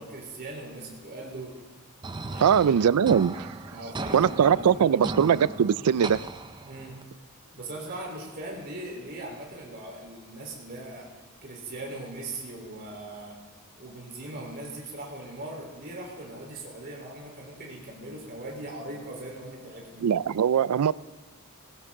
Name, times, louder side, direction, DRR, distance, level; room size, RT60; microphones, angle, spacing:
voice 1, 0.0-1.5 2.3-2.6 3.6-5.1 6.6-7.0 7.5-11.1 11.4-13.4 13.8-20.1, right 2 dB, 45° right, 3.9 m, -40 dB
sound 1, 2.0-7.0, right 2 dB, 20° right, 0.6 m, -37 dB
voice 2, 2.4-3.5 4.1-6.2 20.0-20.9, right 8 dB, 85° right, 0.4 m, -21 dB
17.5 x 16.0 x 3.8 m
head